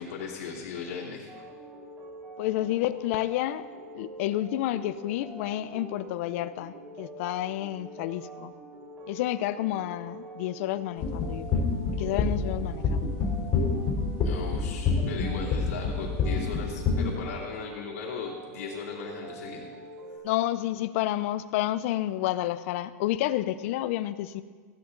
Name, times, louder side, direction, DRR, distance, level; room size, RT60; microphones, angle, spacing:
voice 1, 0.0-1.4 14.2-19.7, left 6 dB, 75° left, -7 dB, 2.8 m, -37 dB
sound 1, 1.3-20.2, right 2 dB, 25° right, 3.4 m, -45 dB
voice 2, 2.4-3.6 3.9-8.5 9.1-13.2 20.2-24.4, left 14 dB, 55° left, 14 dB, 0.6 m, -30 dB
sound 2, 11.0-17.1, left 5 dB, 35° left, 3.6 m, -26 dB
16.0 x 10.5 x 3.9 m, 1.6 s
supercardioid pair, 140°, 8 cm